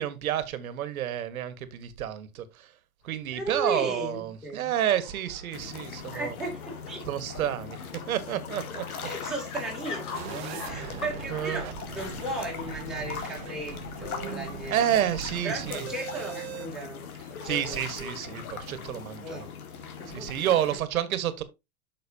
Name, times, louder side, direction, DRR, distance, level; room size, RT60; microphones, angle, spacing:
voice 1, 0.0-2.7 3.0-6.3 7.0-7.8 8.1-8.8 10.7-11.0 11.3-11.6 14.7-15.8 17.4-19.5 20.1-21.4, right 11 dB, 70° right, 1.7 m, -29 dB
sound 1, 3.0-12.5, left 5 dB, 55° left, 3.1 m, -45 dB
voice 2, 3.3-4.7 6.1-7.0 9.0-14.9 15.4-18.2 19.2-19.5 20.0-20.5, right 1 dB, ahead, 3.1 m, -36 dB
sound 2, 5.5-20.8, left 6 dB, 75° left, 2.1 m, -40 dB
sound 3, 10.1-16.7, right 10 dB, 45° right, 1.1 m, -41 dB
8.4 x 6.5 x 2.8 m
hypercardioid pair, 150°, 43 cm